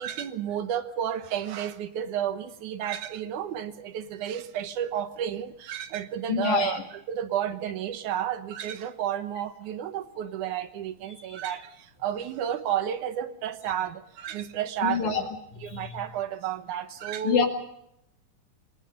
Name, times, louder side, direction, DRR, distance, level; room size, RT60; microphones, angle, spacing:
voice 1, 0.0-6.8 7.1-15.3 15.6-17.4, right 10 dB, 90° right, 10 dB, 2.7 m, -31 dB
voice 2, 6.3-6.8 14.8-15.2 15.7-16.0 17.2-17.5, left 7 dB, 75° left, 3 dB, 3.4 m, -26 dB
28.5 x 19.5 x 5.3 m, 0.79 s
omnidirectional pair, 3.4 m